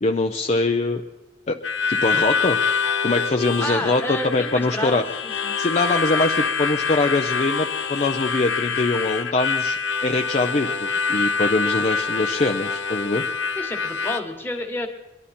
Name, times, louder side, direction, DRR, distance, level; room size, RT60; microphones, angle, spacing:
voice 1, 0.0-1.0 1.5-1.6 1.9-2.6 3.0-5.0 5.6-13.2, left 2 dB, 40° left, 4 dB, 0.5 m, -23 dB
Harmonica, 1.6-14.2, left 5 dB, 85° left, 0.9 m, -25 dB
voice 2, 3.6-5.5 13.6-14.9, left 1 dB, 10° left, 3 dB, 1.4 m, -30 dB
22.5 x 11.5 x 4.2 m, 1.0 s
head